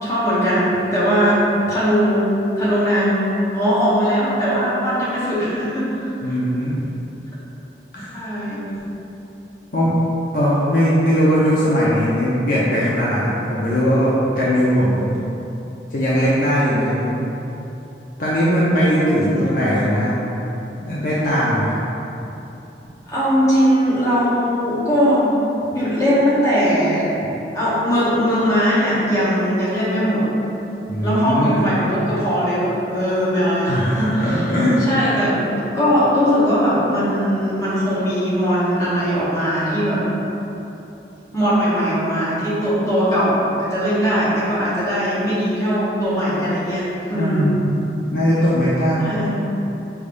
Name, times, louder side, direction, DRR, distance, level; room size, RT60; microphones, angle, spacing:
voice 1, 0.0-1.4 1.7-6.4 8.1-8.7 19.0-19.5 23.1-25.4 25.7-27.1 27.5-30.2 31.0-34.6 34.9-40.0 41.3-47.4 49.0-49.4, equal, 20° left, -10 dB, 1.0 m, -20 dB
voice 2, 6.2-6.7 7.9-8.2 9.7-9.9 10.3-15.2 15.9-17.2 18.2-20.1 20.8-21.8 30.9-31.7 33.7-34.8 47.1-47.7 48.1-49.2, equal, 50° left, -8 dB, 0.6 m, -19 dB
4.9 x 3.4 x 2.5 m, 3.0 s
head